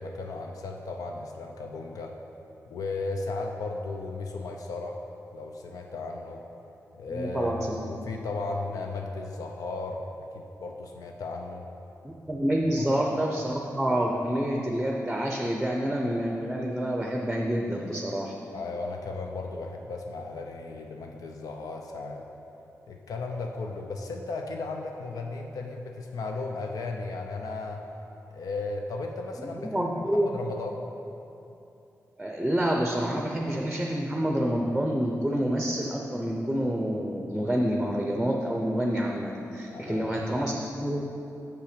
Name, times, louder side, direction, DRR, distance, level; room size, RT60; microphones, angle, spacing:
voice 1, 0.0-2.1 2.7-5.0 5.3-6.4 7.0-10.0 10.3-11.6 12.7-13.0 18.5-22.2 22.9-27.8 28.3-30.8 39.7-40.3, left 3 dB, 85° left, 2 dB, 0.5 m, -35 dB
voice 2, 7.1-8.1 12.0-18.3 29.6-30.3 32.2-41.1, equal, 5° right, 0 dB, 0.6 m, -28 dB
6.4 x 5.6 x 5.1 m, 2.9 s
cardioid pair, 75°, 6 cm